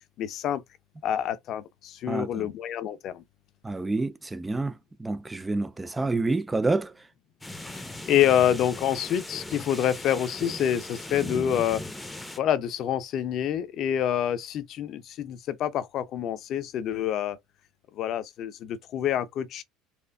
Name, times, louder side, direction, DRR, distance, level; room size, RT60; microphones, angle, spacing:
voice 1, 0.2-0.6 1.0-3.2 7.7-11.8 12.4-17.4 17.9-19.6, left 10 dB, 55° left, 0.6 m, -27 dB
voice 2, 2.1-2.5 3.6-4.7 5.0-6.9, right 3 dB, 15° right, 0.4 m, -28 dB
sound 1, 7.4-12.4, left 1 dB, 10° left, 0.7 m, -38 dB
4.3 x 2.5 x 2.3 m
hypercardioid pair, 85°, 0 cm